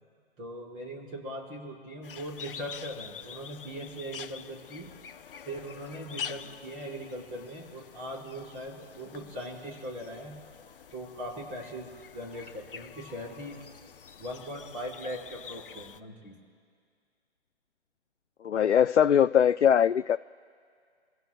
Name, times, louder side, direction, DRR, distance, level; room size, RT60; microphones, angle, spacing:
voice 1, 0.4-4.9 5.4-10.4 10.9-13.6 14.2-16.4, equal, 20° right, -2 dB, 4.7 m, -40 dB
sound 1, 2.0-16.0, left 8 dB, 55° left, 0.8 m, -46 dB
voice 2, 18.4-20.2, left 9 dB, 85° left, 9 dB, 0.5 m, -21 dB
27.5 x 16.0 x 2.2 m, 2.1 s
figure-of-eight pair, 145°, 34 cm